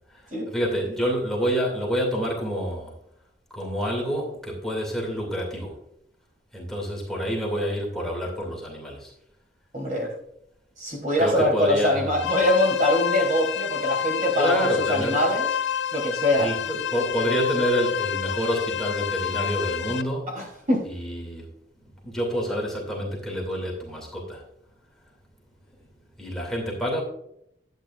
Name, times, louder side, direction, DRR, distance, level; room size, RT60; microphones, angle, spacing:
voice 1, 0.1-2.9 3.5-5.8 6.5-9.1 11.2-12.2 14.4-15.2 16.4-20.3 20.9-21.5 21.8-24.4 26.2-27.0, equal, ahead, -3 dB, 2.4 m, -28 dB
voice 2, 9.7-10.1 10.8-15.5 15.9-16.5 20.3-20.9, left 1 dB, 45° right, 0 dB, 3.4 m, -23 dB
sound 1, 12.1-20.0, left 8 dB, 70° left, 0.6 m, -28 dB
12.0 x 9.1 x 2.5 m, 0.74 s
head